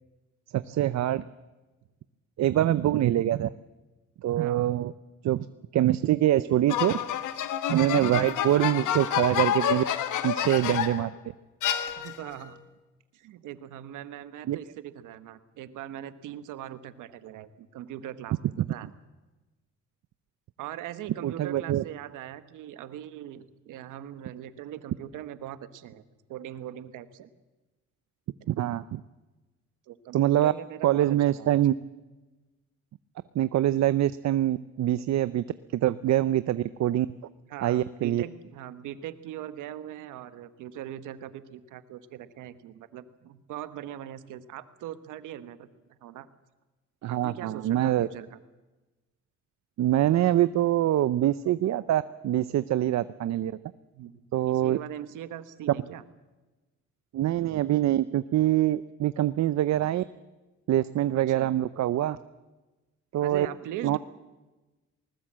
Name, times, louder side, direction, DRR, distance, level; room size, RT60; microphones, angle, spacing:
voice 1, 0.5-1.2 2.4-3.5 4.2-4.9 5.2-5.5 5.7-7.0 7.7-9.8 10.2-11.1 14.5-14.6 21.2-21.8 28.5-29.0 30.1-30.5 30.8-31.7 33.3-35.4 35.7-37.1 37.6-38.2 47.0-48.1 49.8-53.5 54.3-54.8 57.1-60.0 60.7-62.2 63.1-63.5 63.8-64.0, right 13 dB, 65° right, 15 dB, 0.7 m, -24 dB
voice 2, 4.4-4.8 7.7-8.1 12.0-12.6 13.1-18.9 20.6-26.0 26.3-27.3 29.9-31.6 37.5-45.7 46.0-46.3 47.1-48.4 53.9-54.1 54.5-56.0 61.1-61.5 63.2-64.0, right 11 dB, 90° right, 12 dB, 1.3 m, -41 dB
sound 1, 6.7-11.1 11.6-12.4, left 9 dB, 80° left, 1.4 m, -29 dB
19.5 x 19.5 x 7.5 m, 1.1 s
cardioid pair, 90°, 30 cm